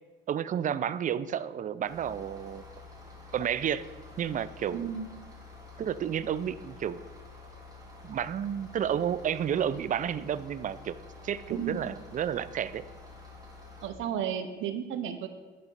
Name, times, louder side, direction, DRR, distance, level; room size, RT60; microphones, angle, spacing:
voice 1, 0.3-2.6 3.3-3.8 4.2-4.9 5.8-7.0 8.0-11.0 11.2-12.8, right 9 dB, 40° right, 16 dB, 0.4 m, -31 dB
sound 1, 1.8-13.9, left 3 dB, 20° right, 2.1 m, -49 dB
voice 2, 4.7-5.1 11.5-11.8 13.8-15.3, right 8 dB, 85° right, 9 dB, 0.7 m, -33 dB
9.7 x 4.0 x 5.2 m, 1.3 s
cardioid pair, 90°, 20 cm